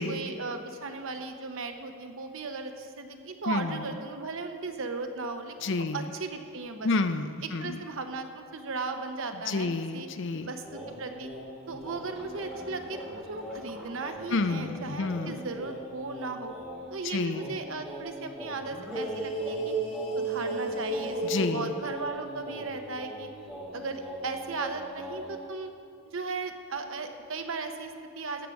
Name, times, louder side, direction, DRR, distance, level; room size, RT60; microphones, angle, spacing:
voice 1, 0.1-6.9 7.6-10.1 10.4-11.3 11.7-16.5 16.9-19.7 20.2-23.3 23.7-25.7 26.0-28.5, right 3 dB, 60° right, 6 dB, 0.9 m, -36 dB
voice 2, 3.5-3.9 5.6-6.1 6.8-7.8 9.5-10.5 14.3-15.4 17.0-17.5 21.2-21.7, left 3 dB, 55° left, 10 dB, 0.5 m, -30 dB
sound 1, 10.6-16.9 17.3-25.4, right 2 dB, ahead, 2.9 m, -37 dB
14.5 x 5.0 x 7.1 m, 2.3 s
head